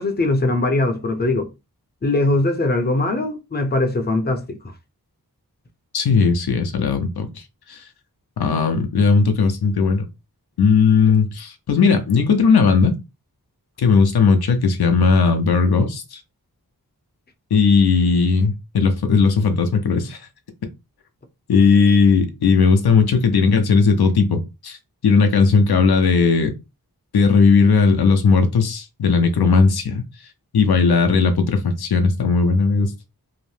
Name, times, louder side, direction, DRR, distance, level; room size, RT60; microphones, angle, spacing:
voice 1, 0.0-1.5 2.0-4.6, left 2 dB, 25° left, 0.5 m, -21 dB
voice 2, 5.9-7.9 8.4-10.1 10.6-13.0 13.8-16.2 17.5-20.3 21.5-24.8 25.0-26.5 27.1-30.1 30.5-32.9, left 5 dB, 80° left, 0.5 m, -17 dB
2.7 x 2.1 x 3.2 m
wide cardioid pair, 60°, 38 cm